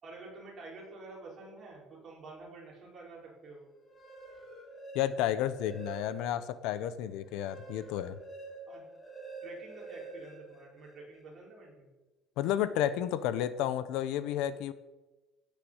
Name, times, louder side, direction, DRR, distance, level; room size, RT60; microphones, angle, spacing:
voice 1, 0.0-3.7 8.7-8.9 9.4-11.9, right 3 dB, 30° right, -4 dB, 5.2 m, -49 dB
sound 1, 3.8-6.5 6.9-11.2, right 3 dB, 10° left, 2.7 m, -47 dB
voice 2, 4.9-8.2 12.4-14.7, left 11 dB, 70° left, 13 dB, 0.9 m, -31 dB
16.5 x 6.7 x 8.0 m, 1.1 s
cardioid pair, 175°, 0 cm